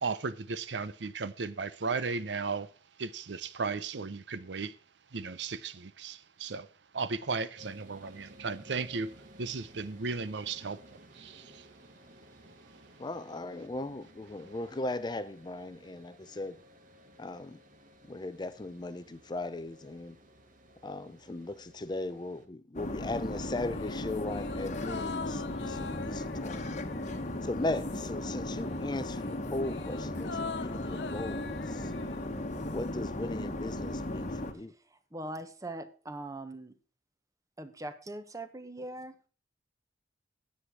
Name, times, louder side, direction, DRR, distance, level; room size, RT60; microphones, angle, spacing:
voice 1, 0.0-2.7 3.0-4.7 5.1-6.7 6.9-9.1 9.4-11.7, right 4 dB, 70° right, 0.7 m, -35 dB
sound 1, 7.6-22.5, equal, 45° right, 1.6 m, -56 dB
voice 2, 13.0-16.6 17.2-17.6 18.1-20.2 20.8-26.6 27.4-31.9 32.7-34.7, left 2 dB, 25° left, 0.5 m, -38 dB
sound 2, 22.7-34.5, left 1 dB, 40° left, 1.2 m, -36 dB
sound 3, 23.6-28.3 28.6-32.9 33.2-33.3, left 5 dB, 65° left, 0.7 m, -44 dB
voice 3, 35.1-36.7 37.6-39.3, right 1 dB, 20° right, 1.1 m, -41 dB
9.9 x 7.8 x 6.2 m
head